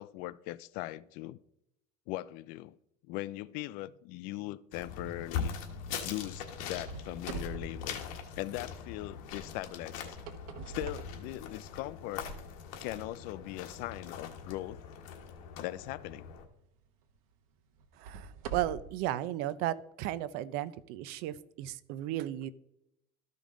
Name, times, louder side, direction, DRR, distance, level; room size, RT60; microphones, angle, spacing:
voice 1, 0.0-1.4 2.1-2.8 3.1-5.5 6.0-8.0 8.3-10.2 10.7-12.3 12.8-14.8 15.6-16.3, left 16 dB, 60° left, 0.4 m, -40 dB
sound 1, 4.7-16.4, left 7 dB, 80° left, 1.4 m, -42 dB
sound 2, 6.8-8.8 10.0-11.9 12.6-12.7 13.4-13.5 16.1-16.3 16.8-16.9 17.8-19.0, right 5 dB, 90° right, 1.1 m, -44 dB
voice 2, 18.0-22.5, right 13 dB, 60° right, 0.6 m, -35 dB
13.5 x 5.3 x 3.7 m
cardioid pair, 145°, 18 cm